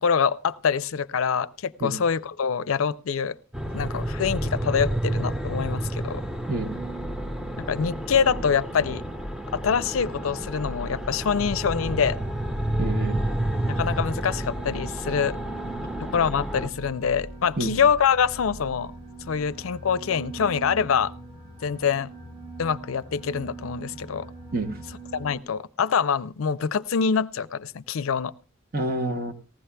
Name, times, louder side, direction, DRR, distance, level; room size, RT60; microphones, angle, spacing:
voice 1, 0.0-3.4 3.7-6.2 7.7-9.0 9.5-12.2 13.7-15.4 16.1-18.9 19.3-21.1 21.6-22.1 22.6-24.3 25.1-28.3, left 6 dB, 85° left, 0.5 m, -25 dB
sound 1, 3.5-16.7, right 1 dB, 5° right, 0.5 m, -30 dB
sound 2, 6.5-25.4, right 1 dB, 20° right, 1.3 m, -40 dB
voice 2, 12.8-13.2 17.6-17.8 24.5-24.8 28.7-29.3, right 2 dB, 45° right, 1.0 m, -28 dB
19.0 x 15.0 x 2.2 m
head